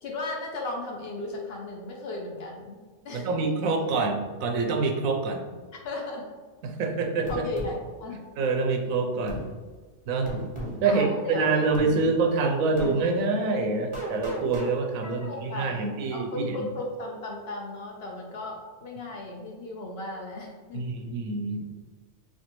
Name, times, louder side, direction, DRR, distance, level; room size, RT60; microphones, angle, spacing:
voice 1, 0.0-3.3 5.8-6.3 7.3-8.2 10.8-12.1 15.0-20.8, left 2 dB, 60° left, 0 dB, 0.7 m, -36 dB
voice 2, 3.1-5.4 6.6-7.4 8.4-9.4 10.1-10.3 10.8-16.6 20.7-21.6, right 3 dB, 90° right, 3 dB, 1.0 m, -26 dB
sound 1, 7.3-7.7 9.3-9.5 10.3-10.8 11.7-11.9 12.8-13.0 13.9-14.7, right 1 dB, 30° right, 0.6 m, -34 dB
4.3 x 2.4 x 3.0 m, 1.4 s
omnidirectional pair, 1.4 m